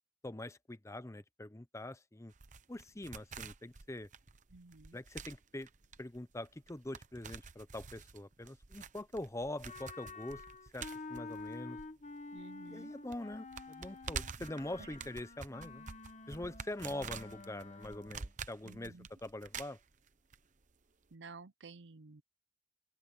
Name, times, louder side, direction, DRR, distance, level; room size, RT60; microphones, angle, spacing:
voice 1, 0.2-2.3 2.7-4.1 4.9-5.7 6.0-10.4 10.7-11.8 12.7-15.9 16.3-18.9 19.2-19.8, left 1 dB, 15° left, 0.8 m, -44 dB
sound 1, 2.3-12.4 12.7-12.8 13.1-20.4 20.6-20.7, right 5 dB, 45° right, 0.9 m, -48 dB
voice 2, 4.5-5.0 12.3-12.9 18.6-19.1 21.1-22.2, right 3 dB, 80° right, 0.7 m, -53 dB
Wind instrument woodwind instrument, 9.7-18.3, left 3 dB, 40° left, 1.5 m, -49 dB
open air
head